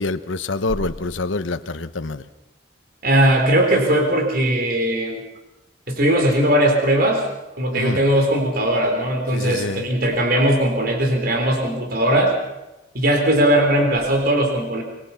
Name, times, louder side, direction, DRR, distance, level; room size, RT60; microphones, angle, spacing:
voice 1, 0.0-2.2 7.7-8.0 9.3-9.9, left 3 dB, 85° left, 11 dB, 1.0 m, -26 dB
voice 2, 3.0-5.2 5.9-7.2 7.6-12.3 12.9-14.8, right 1 dB, 50° right, 3 dB, 3.9 m, -19 dB
26.0 x 22.0 x 5.8 m, 1.0 s
head